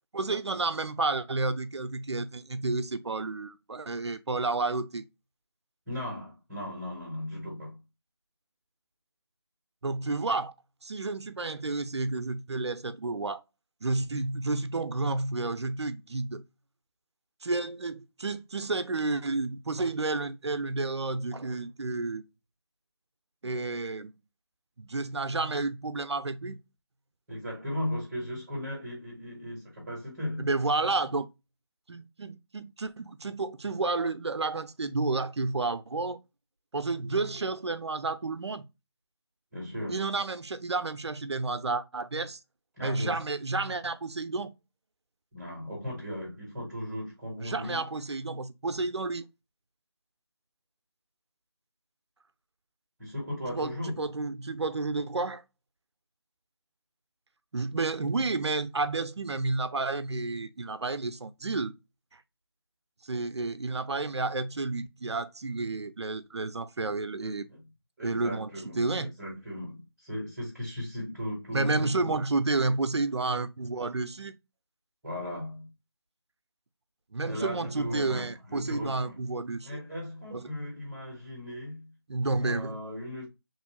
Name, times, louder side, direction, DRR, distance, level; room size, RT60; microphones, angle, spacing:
voice 1, 0.1-5.0 9.8-10.5 10.8-13.4 13.8-16.4 17.4-22.2 23.4-24.1 24.8-26.6 29.2-29.4 30.4-31.3 31.9-36.2 36.7-38.7 39.9-42.4 42.8-44.5 47.4-49.3 53.5-55.4 57.5-61.7 62.1-62.2 63.0-67.5 68.0-68.5 68.8-69.1 71.5-74.4 77.1-79.8 80.3-80.5 82.1-82.8, right 3 dB, 85° right, 0.5 m, -31 dB
voice 2, 5.9-7.8 27.3-30.5 39.5-40.1 42.8-43.2 45.3-47.8 53.0-54.0 67.2-67.6 68.0-72.1 75.0-75.7 77.2-79.2 79.6-81.9 82.4-83.3, left 1 dB, ahead, 0.9 m, -37 dB
3.1 x 2.6 x 2.9 m
figure-of-eight pair, 170°, 14 cm